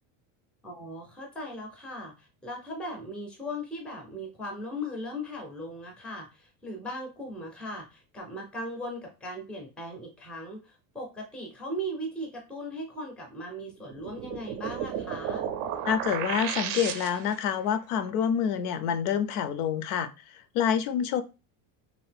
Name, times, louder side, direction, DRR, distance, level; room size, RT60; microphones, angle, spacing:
voice 1, 0.6-15.5, equal, ahead, 1 dB, 0.4 m, -38 dB
sound 1, 13.9-17.5, right 9 dB, 50° right, 0.5 m, -33 dB
voice 2, 15.9-21.2, left 8 dB, 80° left, 13 dB, 0.6 m, -27 dB
2.9 x 2.6 x 3.3 m, 0.30 s
supercardioid pair, 150°, 45 cm